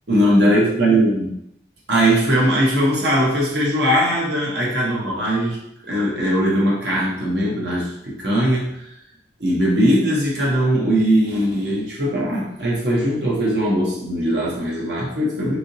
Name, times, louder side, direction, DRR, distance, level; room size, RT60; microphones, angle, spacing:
voice 1, 0.1-1.3 1.9-5.6 5.9-8.9 9.4-15.6, equal, 65° right, -4 dB, 0.9 m, -20 dB
3.3 x 2.7 x 2.7 m, 0.79 s
head